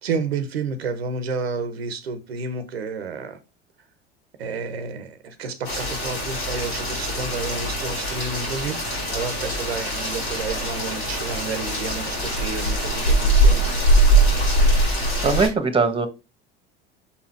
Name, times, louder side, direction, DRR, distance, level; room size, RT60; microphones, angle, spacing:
voice 1, 0.0-3.4 4.4-13.7, right 4 dB, 90° right, 0.9 m, -30 dB
Rain, 5.6-15.5, right 1 dB, 85° left, 4.3 m, -22 dB
voice 2, 15.2-16.1, right 4 dB, 15° right, 1.3 m, -20 dB
5.8 x 4.2 x 4.4 m
hypercardioid pair, 75°, 30 cm